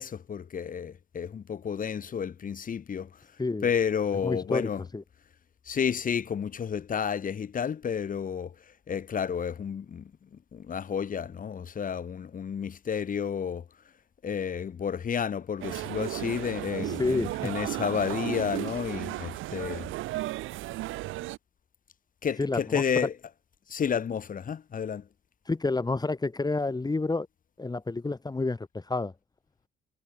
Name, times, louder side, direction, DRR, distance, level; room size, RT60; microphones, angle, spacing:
voice 1, 0.0-3.1 3.6-4.8 5.7-8.5 8.9-13.6 14.2-19.9 22.2-23.1 23.7-25.1, left 7 dB, 45° left, 1.2 m, -31 dB
voice 2, 4.2-5.0 17.0-17.4 22.4-23.1 25.5-27.3 27.6-29.1, left 3 dB, 20° left, 2.3 m, -29 dB
sound 1, 15.6-21.4, right 17 dB, 90° right, 0.9 m, -34 dB
cardioid pair, 90°, 20 cm